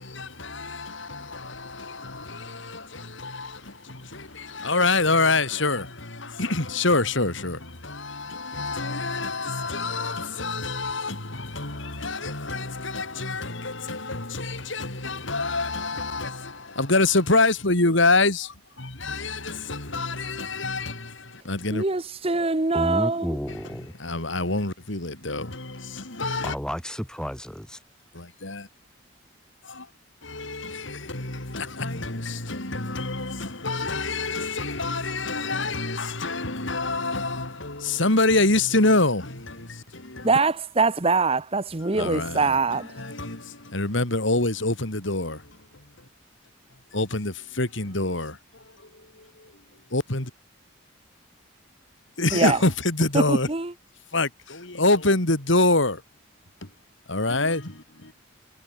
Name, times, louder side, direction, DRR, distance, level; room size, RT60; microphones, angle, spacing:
voice 1, 0.0-21.8 23.5-23.6 24.0-26.6 28.1-28.7 29.6-29.9 30.2-40.3 41.9-45.8 46.9-49.5 49.9-50.3 52.2-53.5 54.1-56.0 56.6-56.7 57.1-58.1, left 2 dB, 65° left, 3.7 m, -26 dB
voice 2, 21.7-23.4 40.2-42.9 52.3-52.6 53.3-53.7, right 3 dB, 30° right, 0.9 m, -23 dB
voice 3, 22.7-23.9 26.4-27.8, equal, 5° left, 2.7 m, -31 dB
head